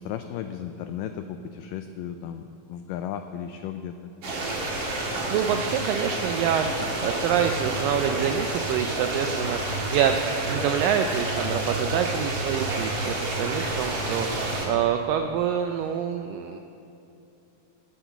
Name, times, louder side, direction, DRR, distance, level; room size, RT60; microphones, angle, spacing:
voice 1, 0.0-4.1, left 9 dB, 85° left, 7 dB, 1.9 m, -35 dB
sound 1, 4.2-14.6, right 2 dB, 45° right, 2.9 m, -29 dB
voice 2, 5.3-16.6, right 8 dB, 80° right, 6 dB, 2.0 m, -26 dB
17.5 x 7.6 x 7.0 m, 2.8 s
omnidirectional pair, 4.4 m